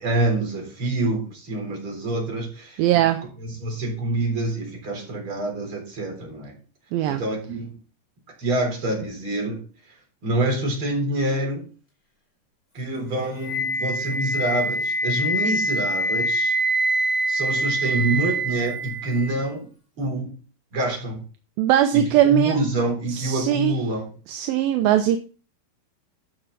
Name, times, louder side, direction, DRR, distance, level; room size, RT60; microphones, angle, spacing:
voice 1, 0.0-3.0 3.4-6.5 7.1-7.8 8.4-9.7 10.2-11.7 12.7-16.5 17.3-19.7 20.0-20.3 20.7-21.2 21.9-24.1, right 1 dB, 30° right, 1 dB, 4.6 m, -26 dB
voice 2, 2.8-3.2 6.9-7.2 21.6-22.6 23.1-23.8 24.3-25.2, right 11 dB, 80° right, 8 dB, 2.2 m, -20 dB
Wind instrument woodwind instrument, 13.4-19.4, right 1 dB, 15° left, 2.4 m, -25 dB
14.0 x 6.7 x 4.1 m, 0.37 s
omnidirectional pair, 4.7 m